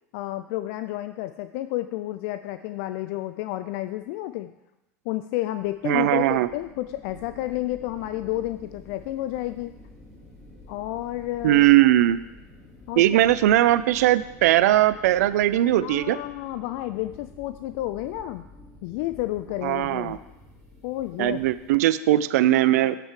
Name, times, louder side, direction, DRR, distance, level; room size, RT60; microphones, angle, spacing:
voice 1, 0.1-4.5 5.1-9.7 10.7-11.7 12.9-13.0 15.8-18.5 18.8-20.2 20.8-21.4, left 15 dB, 60° left, 11 dB, 0.4 m, -31 dB
sound 1, 5.6-21.7, left 1 dB, 5° left, 2.9 m, -49 dB
voice 2, 5.8-6.5 11.4-12.2 13.0-16.2 19.6-20.2 21.2-23.0, right 14 dB, 70° right, 15 dB, 0.4 m, -19 dB
7.6 x 6.3 x 4.8 m, 0.95 s
hypercardioid pair, 85°, 9 cm